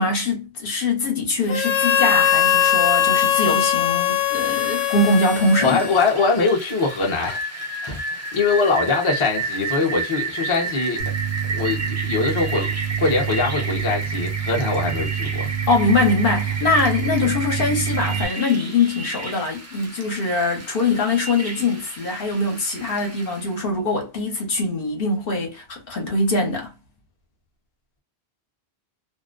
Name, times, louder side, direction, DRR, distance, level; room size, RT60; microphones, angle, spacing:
voice 1, 0.0-5.8 15.7-26.7, left 3 dB, 60° left, 1.0 m, -22 dB
Harmonica, 1.5-6.3, left 9 dB, 90° left, 0.9 m, -20 dB
Rain, 4.1-23.5, right 3 dB, 20° right, 0.5 m, -32 dB
voice 2, 5.6-11.0 11.5-15.6, left 4 dB, 30° left, 0.7 m, -23 dB
sound 1, 11.0-18.2, right 8 dB, 65° right, 0.9 m, -27 dB
2.4 x 2.1 x 2.4 m
omnidirectional pair, 1.1 m